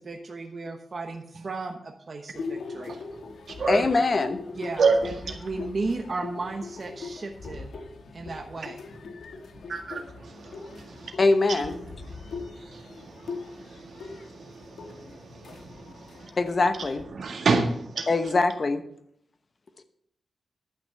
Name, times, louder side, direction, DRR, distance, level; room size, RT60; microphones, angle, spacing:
voice 1, 0.0-3.0 3.8-4.1 4.5-7.7 8.1-8.8, right 3 dB, 35° right, 1.1 m, -35 dB
sound 1, 2.3-17.0, left 4 dB, 85° left, 1.5 m, -41 dB
voice 2, 3.7-4.4 11.2-11.8 16.4-17.0 18.1-18.8, left 3 dB, 35° left, 1.0 m, -23 dB
voice 3, 4.8-5.4 9.7-11.1 12.0-16.3 17.1-18.1, right 4 dB, 55° right, 1.8 m, -29 dB
11.0 x 6.1 x 7.6 m
wide cardioid pair, 160°, 0 cm